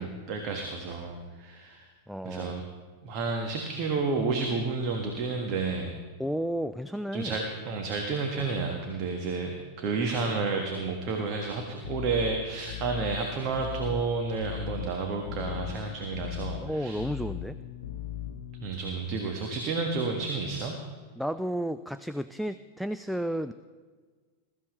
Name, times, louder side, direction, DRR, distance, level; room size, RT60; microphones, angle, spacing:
voice 1, 0.0-1.8 2.2-2.6 3.0-5.9 7.1-17.0 18.6-20.7, right 4 dB, 40° right, 2 dB, 1.6 m, -31 dB
voice 2, 2.1-2.6 6.2-7.4 8.4-8.5 16.6-17.6 21.2-23.5, equal, ahead, 11 dB, 0.4 m, -32 dB
sound 1, 11.8-18.7, left 11 dB, 65° left, 0.9 m, -39 dB
21.0 x 13.5 x 3.2 m, 1.5 s
figure-of-eight pair, 90°, 0 cm